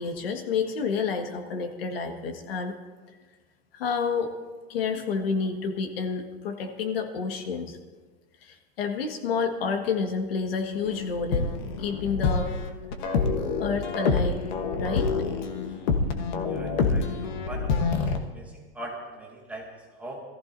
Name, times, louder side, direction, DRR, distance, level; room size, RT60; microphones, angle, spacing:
voice 1, 0.0-2.8 3.7-4.3 4.7-7.8 8.4-11.5 11.8-12.5 13.6-14.4 14.8-15.1, left 5 dB, 70° left, 5 dB, 1.7 m, -29 dB
sound 1, 10.8-18.2, left 4 dB, 45° left, 1.2 m, -27 dB
voice 2, 16.5-20.2, right 1 dB, 5° right, -2 dB, 1.0 m, -41 dB
22.0 x 14.5 x 2.7 m, 1.3 s
supercardioid pair, 180°, 30 cm